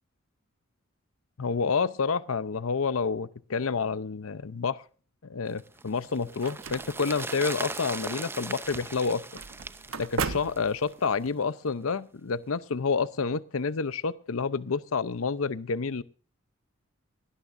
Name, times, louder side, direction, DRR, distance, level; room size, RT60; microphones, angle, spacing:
voice 1, 1.4-4.8 5.2-9.2 10.0-16.0, left 5 dB, 85° left, 16 dB, 0.7 m, -29 dB
sound 1, 5.6-11.0 11.3-11.4, right 3 dB, 10° right, 0.6 m, -39 dB
sound 2, 6.0-11.3, right 5 dB, 85° right, 1.0 m, -38 dB
19.0 x 17.0 x 2.6 m, 0.40 s
head